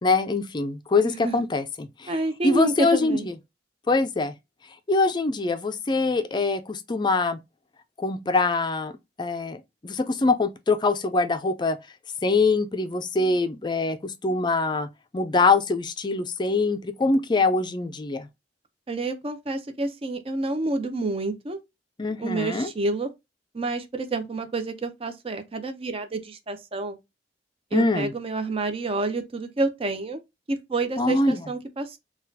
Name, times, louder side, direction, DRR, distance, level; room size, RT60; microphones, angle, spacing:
voice 1, 0.0-2.1 2.4-3.3 3.9-4.3 4.9-7.4 8.0-8.9 9.2-11.8 12.2-14.9 15.1-18.3 22.0-22.7 27.7-28.1 31.0-31.4, left 3 dB, 25° left, 0.4 m, -24 dB
voice 2, 1.0-1.4 2.1-3.3 18.9-21.6 22.2-23.1 23.5-27.0 27.7-30.2 30.5-32.0, right 2 dB, 35° right, 0.6 m, -28 dB
3.9 x 2.3 x 2.6 m
head